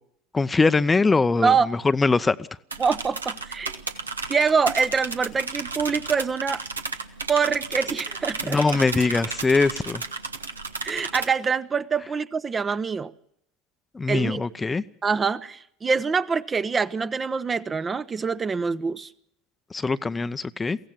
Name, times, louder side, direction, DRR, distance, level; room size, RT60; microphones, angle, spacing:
voice 1, 0.3-2.4 8.4-10.0 13.9-14.8 19.7-20.8, left 3 dB, 15° left, 0.7 m, -22 dB
sound 1, 2.7-11.3, right 4 dB, 85° right, 1.3 m, -33 dB
voice 2, 2.8-3.8 4.3-6.6 7.3-8.6 10.8-13.1 14.1-14.5 15.0-19.1, right 5 dB, 25° right, 0.8 m, -25 dB
23.5 x 16.5 x 7.3 m
figure-of-eight pair, 75°, 0 cm